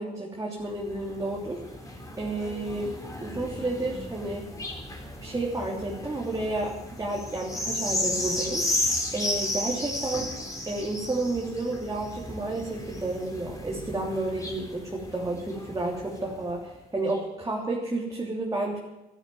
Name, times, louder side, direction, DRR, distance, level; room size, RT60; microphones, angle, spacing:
voice 1, 0.0-1.6 1.9-2.9 3.2-4.5 5.2-10.3 10.6-18.8, right 2 dB, 20° right, -3 dB, 3.3 m, -31 dB
sound 1, 0.6-16.5 17.1-17.2, left 1 dB, 20° left, 4.0 m, -34 dB
13.0 x 12.0 x 9.4 m, 0.96 s
cardioid pair, 85°, 16 cm